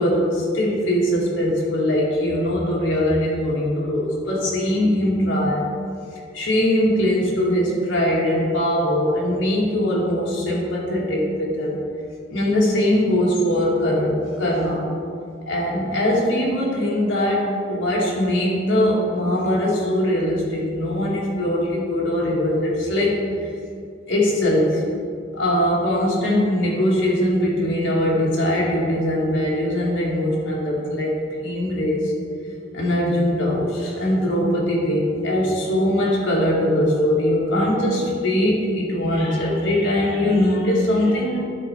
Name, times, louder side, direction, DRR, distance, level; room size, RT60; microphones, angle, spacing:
voice 1, 0.0-5.7 6.3-11.8 12.3-14.8 15.5-23.5 24.1-24.8 25.3-31.1 31.4-32.1 32.7-41.4, left 1 dB, 90° left, -4 dB, 2.0 m, -21 dB
10.5 x 4.3 x 4.6 m, 2.3 s
head